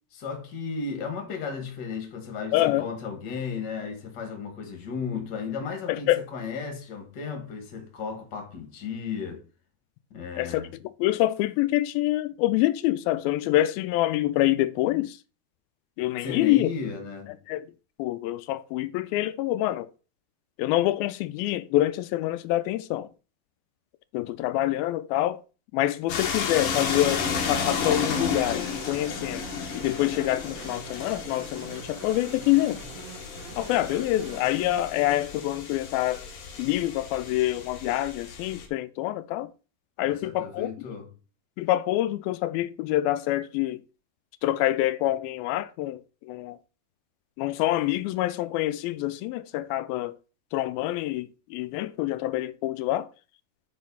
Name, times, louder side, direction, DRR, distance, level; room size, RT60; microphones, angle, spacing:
voice 1, 0.1-9.4 10.1-10.8 16.2-17.4 40.1-41.1, left 5 dB, 40° left, 1.8 m, -34 dB
voice 2, 2.5-2.9 5.9-6.2 10.4-10.6 11.0-15.2 16.0-16.7 17.5-17.6 18.0-19.9 20.6-23.1 24.1-25.4 25.7-29.4 29.8-32.8 33.6-36.2 36.6-39.5 40.0-40.7 41.6-43.8 44.4-46.0 46.3-46.6 47.4-50.2 50.5-53.1, left 15 dB, 85° left, 2.3 m, -26 dB
sound 1, 26.1-38.7, left 6 dB, 60° left, 1.5 m, -33 dB
sound 2, 27.6-34.8, right 9 dB, 80° right, 2.8 m, -45 dB
7.6 x 4.9 x 5.5 m
omnidirectional pair, 4.3 m